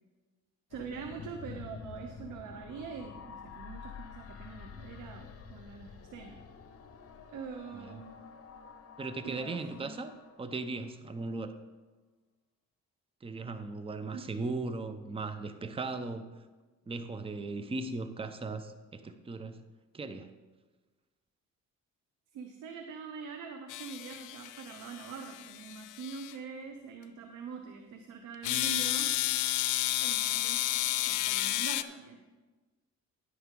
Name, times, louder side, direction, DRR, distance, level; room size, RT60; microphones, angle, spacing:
sound 1, 0.7-11.1, left 6 dB, 50° left, 1.0 m, -49 dB
voice 1, 0.7-6.4 7.3-8.1 9.2-10.0 14.1-14.2 22.3-29.2 30.0-30.6 31.1-32.2, right 5 dB, 85° right, 5 dB, 0.9 m, -44 dB
voice 2, 9.0-10.1 10.4-11.6 13.2-16.3 16.9-19.6 19.9-20.3, right 3 dB, 20° right, 10 dB, 0.7 m, -37 dB
sound 2, 23.7-26.3 28.4-31.8, left 15 dB, 85° left, 0.5 m, -31 dB
11.0 x 9.4 x 3.7 m, 1.2 s
cardioid pair, 90°, 30 cm